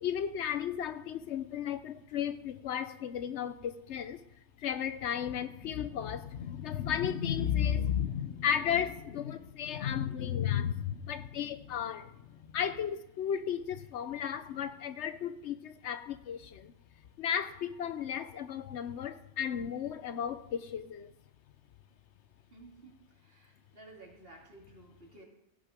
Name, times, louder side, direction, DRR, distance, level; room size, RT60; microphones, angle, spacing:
voice 1, 0.0-4.2 4.6-16.7 17.2-21.1, left 9 dB, 75° left, 0.9 m, -34 dB
voice 2, 22.5-25.2, right 2 dB, 50° right, 2.7 m, -54 dB
16.5 x 6.2 x 5.0 m
omnidirectional pair, 1.2 m